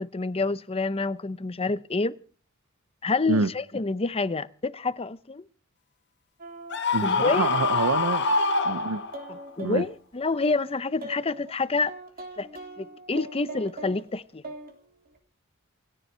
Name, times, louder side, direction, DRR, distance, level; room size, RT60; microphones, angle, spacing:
voice 1, 0.0-2.2 3.0-5.4 7.0-7.5 9.3-11.9 12.4-12.5 12.8-14.4, left 3 dB, 30° left, 0.7 m, -28 dB
sound 1, 6.4-6.8 7.3-9.9 10.4-11.5 11.9-14.0 14.4-14.7 15.1-15.2, right 1 dB, 45° right, 3.3 m, -42 dB
Screaming, 6.7-9.4, left 4 dB, 55° left, 1.8 m, -25 dB
voice 2, 6.9-8.2 8.6-9.0 9.6-9.8, right 4 dB, 85° right, 0.7 m, -26 dB
28.5 x 10.0 x 4.5 m
head